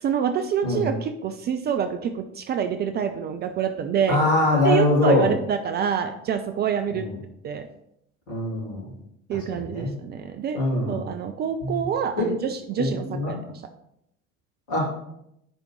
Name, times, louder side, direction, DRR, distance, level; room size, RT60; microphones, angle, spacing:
voice 1, 0.0-4.2 4.6-7.1 7.4-7.7 9.3-10.6 10.9-13.5, right 8 dB, 25° right, 8 dB, 0.4 m, -26 dB
voice 2, 0.6-0.9 4.1-5.3 6.9-7.1 8.3-8.8 9.3-9.9 10.5-11.0 11.6-11.8 12.2-12.3 12.8-13.3 14.7-14.9, left 2 dB, 65° left, -5 dB, 3.1 m, -23 dB
10.0 x 5.0 x 3.1 m, 0.79 s
figure-of-eight pair, 65°, 42 cm